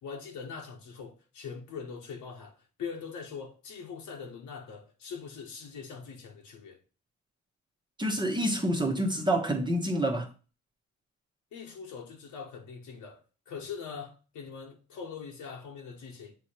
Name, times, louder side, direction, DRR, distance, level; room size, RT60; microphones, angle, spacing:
voice 1, 0.0-6.8 11.5-13.2 13.5-16.3, left 6 dB, 80° left, 1.3 m, -42 dB
voice 2, 8.0-10.3, right 1 dB, 15° right, 1.1 m, -27 dB
7.1 x 3.1 x 4.3 m
cardioid pair, 90°, 30 cm